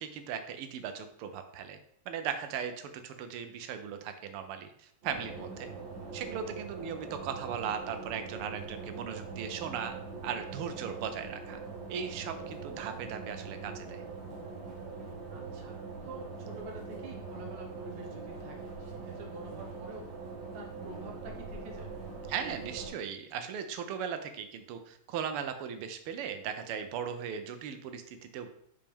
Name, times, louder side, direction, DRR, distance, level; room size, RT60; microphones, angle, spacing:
voice 1, 0.0-1.8 2.1-5.7 6.1-9.9 10.2-11.6 11.9-14.0 22.3-28.5, right 7 dB, 85° right, 7 dB, 1.6 m, -38 dB
sound 1, 5.0-22.9, right 4 dB, 60° right, 1.7 m, -42 dB
voice 2, 15.3-20.1 20.5-21.9, right 1 dB, 35° right, 0 dB, 1.0 m, -48 dB
5.7 x 5.2 x 3.5 m, 0.67 s
omnidirectional pair, 2.4 m